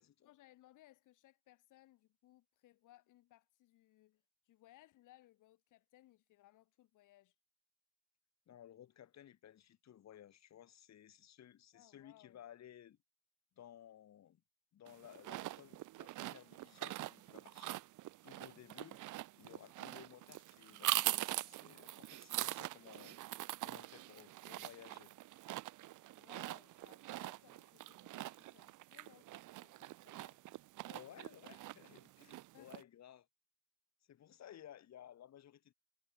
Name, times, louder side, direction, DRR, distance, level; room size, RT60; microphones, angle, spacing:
voice 1, 0.2-7.4 11.7-12.4 26.2-30.4 32.5-32.8, left 15 dB, 90° left, 4.1 m, -65 dB
voice 2, 8.5-13.0 13.6-14.4 14.7-17.8 18.2-19.0 19.3-23.2 23.6-25.1 30.9-33.3 34.1-35.7, left 10 dB, 65° left, 2.2 m, -58 dB
sound 1, 14.9-32.8, right 16 dB, 85° right, 1.1 m, -43 dB
cardioid pair, 90°, 30 cm